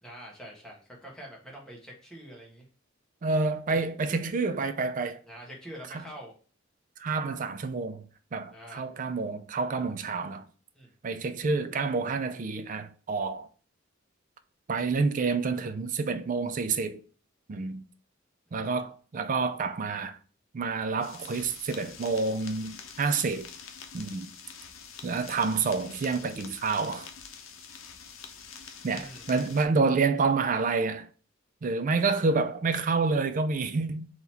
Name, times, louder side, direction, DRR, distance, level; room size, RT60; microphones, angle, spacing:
voice 1, 0.0-2.6 5.2-6.3 8.5-8.8 10.7-10.9 18.5-18.8 28.9-29.3, equal, 5° left, 1.3 m, -45 dB
voice 2, 3.2-5.2 7.0-8.0 8.3-10.4 11.0-13.5 14.7-17.0 17.5-17.8 18.5-20.2 20.5-23.5 23.9-24.3 25.0-27.1 28.8-31.1 31.6-34.1, right 4 dB, 40° right, 0.4 m, -28 dB
sound 1, 21.0-29.6, left 6 dB, 90° left, 0.7 m, -46 dB
3.9 x 3.0 x 4.1 m
head